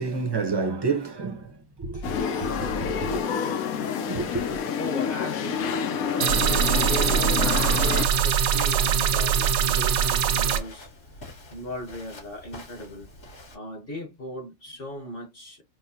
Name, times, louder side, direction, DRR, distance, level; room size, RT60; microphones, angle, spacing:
voice 1, 0.0-1.5 1.8-3.2 4.1-4.5, right 4 dB, 20° right, 0.7 m, -29 dB
sound 1, 2.0-8.1, left 7 dB, 90° left, 1.2 m, -28 dB
voice 2, 4.8-7.4 7.7-10.9 11.5-13.1 13.5-15.6, left 1 dB, 45° left, 1.4 m, -38 dB
sound 2, 6.2-10.6, right 8 dB, 80° right, 1.1 m, -22 dB
Walk footsteps, 8.4-13.6, left 2 dB, 60° left, 2.4 m, -45 dB
4.6 x 2.2 x 2.8 m
omnidirectional pair, 1.5 m